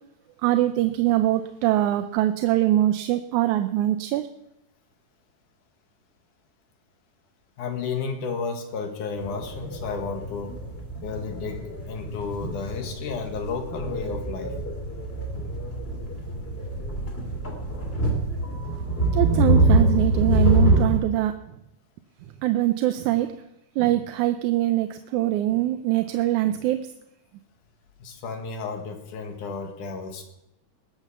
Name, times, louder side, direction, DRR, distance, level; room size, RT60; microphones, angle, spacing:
voice 1, 0.4-4.3 19.1-21.4 22.4-23.4 23.8-26.9, right 14 dB, 85° right, 9 dB, 2.1 m, -23 dB
voice 2, 7.6-10.5 11.0-14.5 28.0-30.2, left 5 dB, 85° left, 5 dB, 3.4 m, -32 dB
sound 1, 9.2-21.0, right 1 dB, 20° left, 2.9 m, -25 dB
20.5 x 8.2 x 7.1 m, 0.83 s
omnidirectional pair, 3.4 m